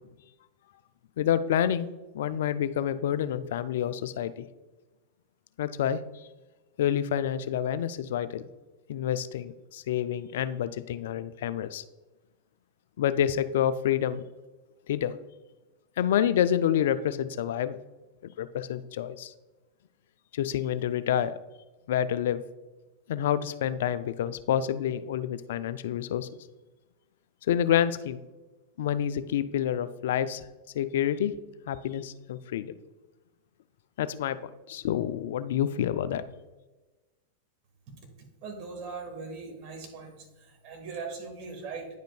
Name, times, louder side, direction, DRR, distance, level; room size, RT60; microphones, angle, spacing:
voice 1, 1.2-1.9 2.1-4.5 5.6-6.0 6.8-8.5 8.9-11.8 13.0-14.2 14.9-15.1 16.0-17.8 18.2-19.3 20.3-21.4 21.9-22.4 23.1-26.3 27.5-28.2 28.8-30.4 30.7-31.3 31.7-32.7 34.0-36.2, left 10 dB, 65° left, 14 dB, 0.3 m, -28 dB
voice 2, 38.4-41.9, right 4 dB, 45° right, 2 dB, 1.7 m, -40 dB
9.9 x 5.1 x 2.3 m, 1.2 s
figure-of-eight pair, 95°, 0 cm